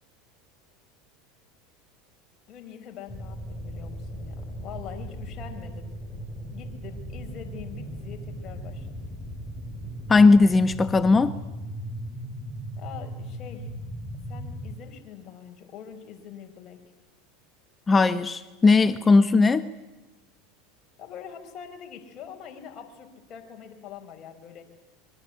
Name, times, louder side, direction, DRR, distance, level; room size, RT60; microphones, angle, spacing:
voice 1, 2.5-5.9 6.5-8.9 12.8-13.7 14.3-16.8 21.0-24.6, left 8 dB, 45° left, 4 dB, 5.8 m, -43 dB
sound 1, 3.1-14.8, equal, ahead, 6.1 m, -37 dB
voice 2, 10.1-11.4 17.9-19.6, left 3 dB, 20° left, 12 dB, 1.2 m, -18 dB
26.0 x 23.5 x 8.4 m, 1.0 s
hypercardioid pair, 100°, 0 cm